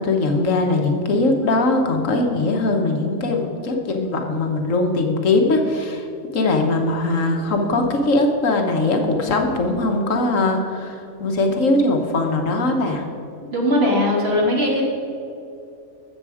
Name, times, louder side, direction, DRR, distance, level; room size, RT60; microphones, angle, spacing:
voice 1, 0.0-6.0 6.3-10.9 11.2-13.0, left 2 dB, 75° left, 3 dB, 1.5 m, -20 dB
voice 2, 13.4-14.8, left 1 dB, 50° right, -3 dB, 2.5 m, -19 dB
13.5 x 7.2 x 4.9 m, 2.7 s
omnidirectional pair, 1.4 m